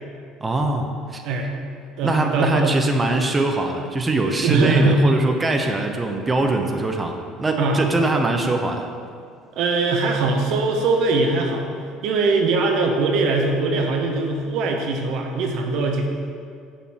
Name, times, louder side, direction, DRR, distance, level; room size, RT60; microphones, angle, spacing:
voice 1, 0.4-1.2 2.0-8.9, right 2 dB, 20° right, 3 dB, 0.9 m, -22 dB
voice 2, 2.0-2.8 4.4-5.1 7.6-7.9 9.5-11.7 12.0-16.1, right 3 dB, 60° right, 2 dB, 0.9 m, -21 dB
7.3 x 7.0 x 4.5 m, 2.2 s
figure-of-eight pair, 60°, 0 cm